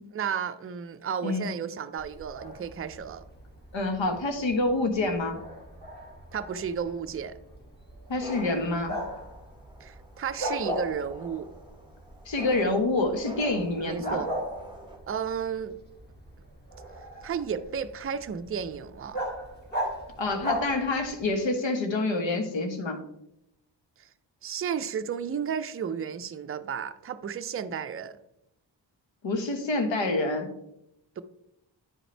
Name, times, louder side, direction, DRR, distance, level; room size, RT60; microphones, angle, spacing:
voice 1, 0.1-3.2 6.3-7.4 9.8-11.5 13.8-14.3 15.1-15.8 17.2-19.2 24.0-24.1 24.4-28.2 31.2-31.3, right 7 dB, 35° right, 0.4 m, -33 dB
Bark, 2.0-21.3, equal, 20° left, 1.8 m, -38 dB
voice 2, 3.7-5.4 8.1-9.0 12.3-14.2 20.2-23.0 29.2-30.5, left 2 dB, 85° left, 1.2 m, -27 dB
sound 1, 8.1-15.0, right 1 dB, 10° right, 1.1 m, -46 dB
9.6 x 5.1 x 3.3 m
wide cardioid pair, 135°, 44 cm